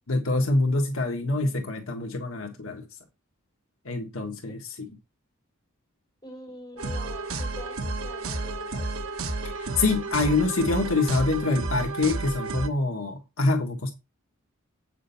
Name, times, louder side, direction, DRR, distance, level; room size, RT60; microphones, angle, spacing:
voice 1, 0.1-2.8 3.8-4.9 9.4-13.9, left 2 dB, 65° left, 1.4 m, -25 dB
voice 2, 6.2-9.0, equal, 20° left, 4.6 m, -44 dB
sound 1, 6.8-12.7, right 3 dB, 75° right, 1.2 m, -31 dB
8.1 x 6.1 x 5.6 m
head